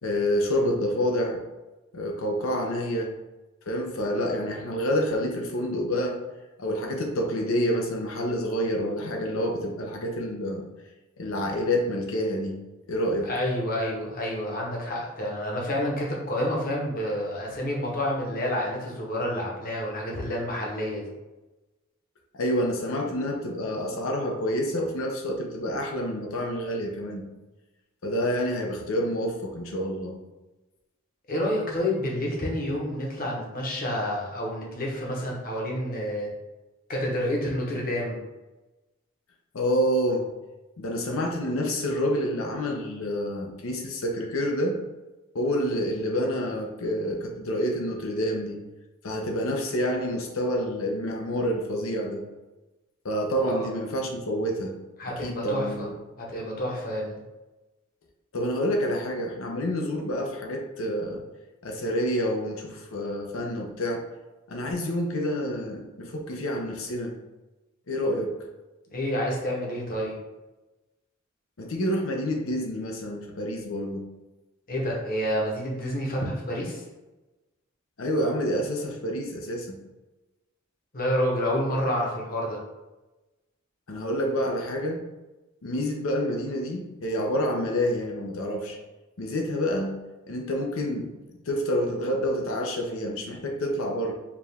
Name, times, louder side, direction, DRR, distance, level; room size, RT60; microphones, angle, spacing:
voice 1, 0.0-1.4 1.9-3.1 3.7-6.2 6.6-10.6 11.2-12.5 12.9-13.3 22.3-27.2 28.0-30.2 39.5-40.2 40.8-44.8 45.3-48.6 49.0-52.2 53.0-54.7 55.2-55.9 58.3-61.2 61.6-64.0 64.5-67.1 67.9-68.3 71.6-74.0 78.0-79.8 83.9-85.0 85.6-88.8 89.2-89.9 90.3-91.1 91.5-94.1, equal, 85° left, 1 dB, 0.7 m, -28 dB
voice 2, 13.2-21.1 31.3-36.3 36.9-38.2 53.5-53.7 55.0-55.9 56.2-57.2 68.9-70.2 74.7-76.8 80.9-82.6, left 1 dB, 45° left, -2 dB, 1.0 m, -29 dB
4.8 x 2.4 x 3.5 m, 1.1 s
head